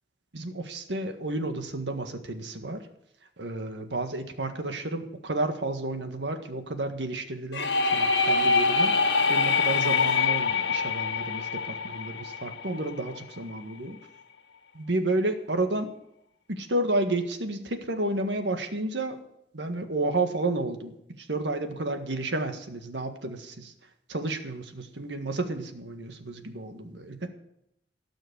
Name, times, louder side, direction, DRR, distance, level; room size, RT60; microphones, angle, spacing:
voice 1, 0.3-2.9 3.4-14.0 14.7-15.9 16.5-19.2 19.5-23.7 24.1-27.3, right 2 dB, 85° right, 6 dB, 1.8 m, -31 dB
sound 1, 7.5-13.2, left 4 dB, 90° left, 1.3 m, -25 dB
17.5 x 6.4 x 8.0 m, 0.77 s
head